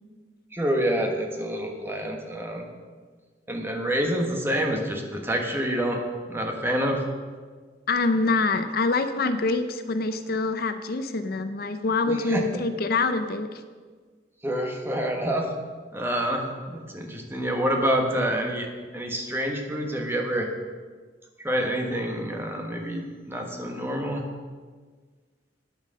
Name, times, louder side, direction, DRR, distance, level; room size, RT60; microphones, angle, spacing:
voice 1, 0.5-2.7 3.5-6.0 6.3-7.0 12.1-12.6 14.4-15.5 15.9-18.7 18.9-20.5 21.4-24.3, equal, 15° right, 1 dB, 1.3 m, -27 dB
voice 2, 7.9-13.6, left 3 dB, 55° left, 9 dB, 0.6 m, -25 dB
9.2 x 8.9 x 6.5 m, 1.5 s
head